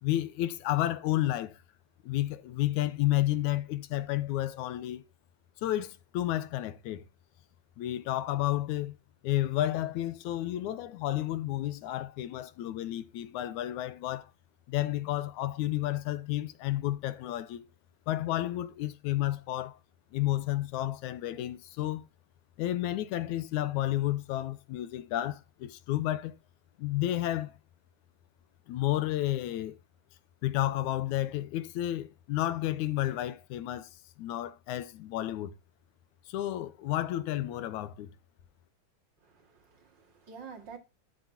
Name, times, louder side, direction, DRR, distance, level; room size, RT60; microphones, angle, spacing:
voice 1, 0.0-1.5 2.0-5.0 5.6-7.0 7.8-8.9 9.2-14.3 14.7-17.6 18.1-19.8 20.1-22.1 22.6-26.3 26.8-27.5 28.7-29.8 30.4-33.9 34.2-35.5 36.3-38.1, left 14 dB, 85° left, 2.3 m, -31 dB
voice 2, 39.2-40.8, right 6 dB, 40° right, 2.7 m, -48 dB
12.5 x 7.8 x 2.8 m
omnidirectional pair, 3.4 m